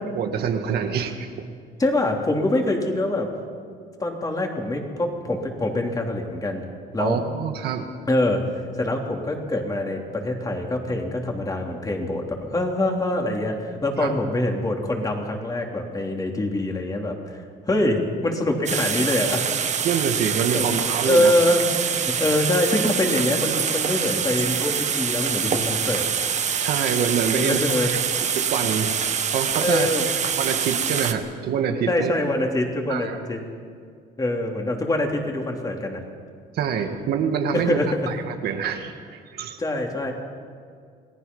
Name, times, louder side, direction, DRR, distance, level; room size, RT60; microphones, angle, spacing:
voice 1, 0.2-1.5 7.0-7.9 14.0-14.1 19.8-21.3 26.6-27.9 28.2-28.9 29.3-29.9 30.4-32.1 32.9-33.2 36.5-37.8 38.1-38.2 38.4-39.6, right 7 dB, 70° right, 5 dB, 1.9 m, -26 dB
voice 2, 1.8-3.3 4.0-6.6 6.9-7.2 8.1-8.4 8.8-17.2 17.7-19.5 20.5-20.7 21.0-26.0 27.3-27.9 29.6-30.1 31.9-33.4 34.2-36.0 37.5-37.9 39.6-40.1, left 1 dB, 20° left, 1 dB, 3.4 m, -24 dB
sound 1, 18.7-31.1, right 7 dB, 45° right, 1.4 m, -25 dB
28.0 x 18.5 x 5.6 m, 2.2 s
cardioid pair, 110°, 17 cm